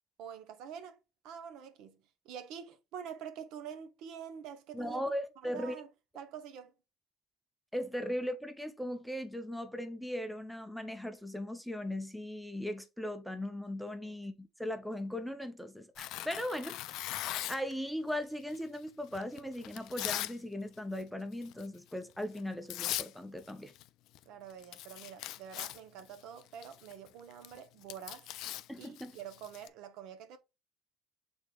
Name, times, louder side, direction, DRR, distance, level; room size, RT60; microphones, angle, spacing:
voice 1, 0.2-1.0 1.2-2.0 2.2-5.0 5.4-5.9 6.1-6.7 14.0-14.2 24.3-28.3 28.8-30.4, right 8 dB, 65° right, 0.8 m, -46 dB
voice 2, 4.7-5.8 7.7-17.1 17.5-23.7 28.7-29.1, left 1 dB, ahead, 0.5 m, -38 dB
Tearing, 16.0-17.7 18.5-20.4 20.7-21.0 21.4-21.7 22.4-22.5 22.7-23.1 23.4-23.9 24.1-24.2 24.5-29.7, left 14 dB, 65° left, 0.4 m, -40 dB
6.5 x 3.6 x 2.3 m
cardioid pair, 145°, 0 cm